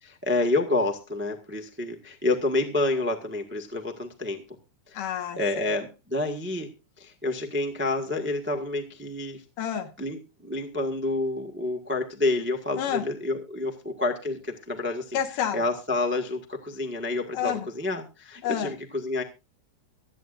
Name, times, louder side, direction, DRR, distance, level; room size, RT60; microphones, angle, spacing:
voice 1, 0.0-4.4 4.9-5.0 5.4-6.7 7.0-9.4 10.0-15.2 15.5-19.2, left 2 dB, 10° right, 3 dB, 0.5 m, -28 dB
voice 2, 4.9-5.7 9.6-9.9 12.8-13.0 15.1-15.7 17.3-17.7 18.4-18.7, left 9 dB, 75° left, 7 dB, 3.0 m, -29 dB
23.5 x 9.0 x 2.5 m, 0.29 s
omnidirectional pair, 3.9 m